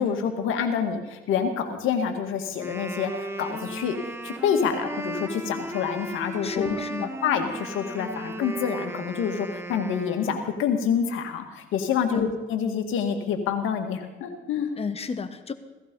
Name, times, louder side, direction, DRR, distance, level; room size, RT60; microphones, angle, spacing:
voice 1, 0.0-4.0 4.2-6.7 7.2-14.7, left 7 dB, 90° left, 6 dB, 2.0 m, -27 dB
Wind instrument woodwind instrument, 2.5-10.6, right 2 dB, 10° right, 1.6 m, -36 dB
voice 2, 6.4-7.1 12.1-12.3 14.8-15.5, left 5 dB, 30° left, 9 dB, 1.2 m, -32 dB
17.0 x 15.5 x 5.4 m, 1.1 s
cardioid pair, 90°, 20 cm